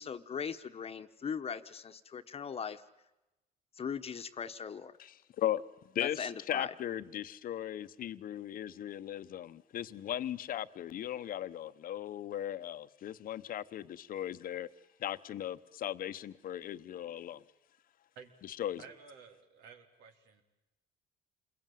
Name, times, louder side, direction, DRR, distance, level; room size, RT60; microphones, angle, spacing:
voice 1, 0.0-2.8 3.8-5.0 6.0-6.7, left 6 dB, 35° left, 1.2 m, -39 dB
voice 2, 5.0-14.7 15.0-17.4 18.4-18.8, left 11 dB, 55° left, 1.0 m, -38 dB
voice 3, 18.8-20.4, right 6 dB, 80° right, 3.6 m, -53 dB
28.0 x 21.5 x 9.3 m
cardioid pair, 110°, 17 cm